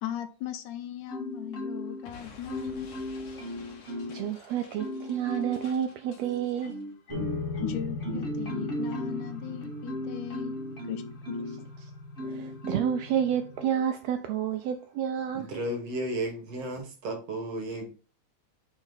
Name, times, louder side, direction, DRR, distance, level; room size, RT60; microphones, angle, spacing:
voice 1, 0.0-2.9 7.6-10.6 10.8-11.4, left 11 dB, 85° left, 2.2 m, -38 dB
Marimba xylophone, 1.1-2.1 2.5-4.3 4.8-5.7 6.2-11.6 12.2-13.0 13.6-13.8, equal, 25° left, 1.3 m, -36 dB
Explosion, 2.0-6.8, left 4 dB, 60° left, 1.5 m, -51 dB
voice 2, 4.1-6.7 12.3-15.6, right 9 dB, 80° right, 1.5 m, -30 dB
sound 1, 7.1-13.6, left 3 dB, 10° right, 1.5 m, -39 dB
voice 3, 15.3-17.9, right 1 dB, 60° right, 2.1 m, -33 dB
5.7 x 4.5 x 3.8 m
omnidirectional pair, 3.4 m